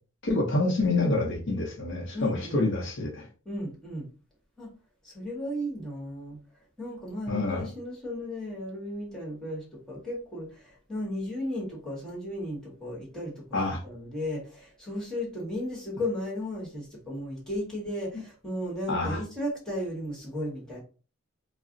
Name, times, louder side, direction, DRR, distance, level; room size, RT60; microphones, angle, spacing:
voice 1, 0.2-3.3 7.3-7.7 13.5-13.8 18.9-19.2, left 2 dB, 55° left, 0 dB, 0.6 m, -27 dB
voice 2, 2.1-2.6 3.4-4.1 4.6-4.7 5.0-6.4 6.8-13.4 13.8-20.8, left 1 dB, 5° left, -4 dB, 1.1 m, -35 dB
2.4 x 2.0 x 3.7 m, 0.36 s
head